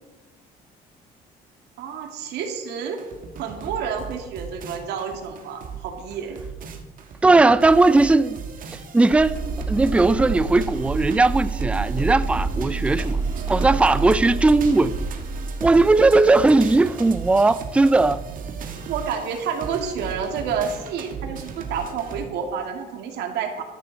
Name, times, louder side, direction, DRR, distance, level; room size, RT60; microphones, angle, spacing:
voice 1, 1.8-3.0 3.4-6.4 13.8-14.1 18.9-23.6, right 6 dB, 80° right, 2.4 m, -29 dB
sound 1, 3.0-22.2, right 6 dB, 55° right, 1.8 m, -36 dB
voice 2, 7.2-8.4 8.9-9.4 9.7-13.2 13.5-15.0 15.6-18.2, right 3 dB, 5° right, 0.4 m, -18 dB
sound 2, 9.1-16.5, right 3 dB, 25° right, 3.1 m, -29 dB
13.5 x 12.5 x 4.1 m
cardioid pair, 110°, 17 cm